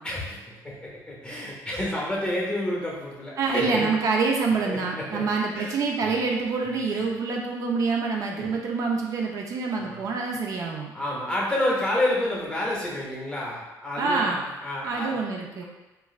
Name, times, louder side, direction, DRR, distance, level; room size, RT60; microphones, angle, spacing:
voice 1, 0.0-3.9 4.6-5.2 5.5-5.8 6.9-7.0 8.3-8.5 9.8-10.0 10.9-15.2, left 1 dB, 15° left, -4 dB, 0.7 m, -29 dB
voice 2, 3.4-10.9 14.0-14.4 14.8-15.6, right 4 dB, 50° right, -1 dB, 0.4 m, -26 dB
3.0 x 2.4 x 2.3 m, 1.1 s
cardioid pair, 125°, 7 cm